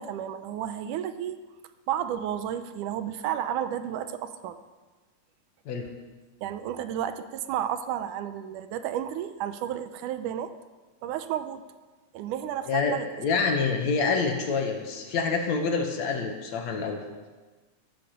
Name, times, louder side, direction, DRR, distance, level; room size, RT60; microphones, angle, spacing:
voice 1, 0.0-1.4 1.9-4.6 6.4-10.5 11.0-11.6 12.1-13.1, right 10 dB, 80° right, 11 dB, 2.3 m, -32 dB
voice 2, 12.7-17.0, left 4 dB, 65° left, 4 dB, 2.7 m, -27 dB
14.5 x 12.5 x 6.7 m, 1.3 s
omnidirectional pair, 3.6 m